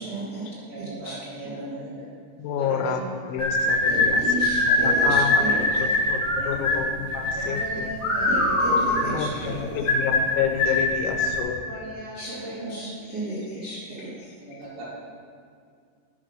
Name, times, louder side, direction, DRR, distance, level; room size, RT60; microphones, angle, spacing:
voice 1, 0.0-1.2 1.4-1.5 3.9-5.9 8.2-9.6 12.1-14.3, right 2 dB, 85° right, -9 dB, 0.9 m, -33 dB
voice 2, 0.7-2.1 2.6-3.0 3.5-3.6 4.1-4.2 6.4-6.8 7.3-8.6 9.7-9.8 11.7-12.8 14.4-14.8, right 2 dB, 60° right, -8 dB, 4.8 m, -37 dB
voice 3, 2.4-4.2 4.7-5.4 5.8-7.9 9.1-11.6, left 8 dB, 90° left, 5 dB, 3.0 m, -29 dB
sound 1, 3.4-11.4, left 2 dB, 55° left, 2.6 m, -22 dB
11.0 x 5.1 x 6.2 m, 2.2 s
omnidirectional pair, 5.2 m